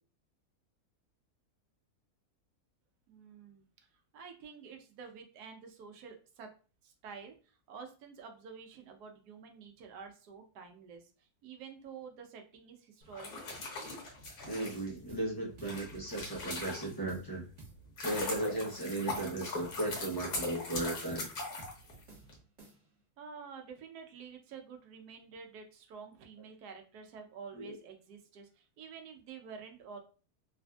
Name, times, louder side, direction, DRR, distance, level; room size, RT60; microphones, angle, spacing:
voice 1, 3.1-3.6 4.1-6.5 6.8-7.3 7.7-13.6 23.2-30.0, right 6 dB, 85° right, 5 dB, 1.2 m, -49 dB
sound 1, 13.1-17.2 17.6-22.3, left 2 dB, 85° left, 1.4 m, -40 dB
voice 2, 14.5-17.4 18.0-21.3 27.5-27.8, right 2 dB, 25° left, -3 dB, 0.5 m, -36 dB
sound 2, 15.1-15.3 15.6-15.8 16.1-16.7 17.1-17.3 17.6-17.8 18.1-18.8 19.1-19.3 19.6-19.8 20.1-20.8 21.1-21.3 21.6-21.8 22.1-23.0, right 2 dB, 50° right, 1.4 m, -54 dB
3.3 x 2.5 x 2.2 m, 0.36 s
omnidirectional pair, 1.6 m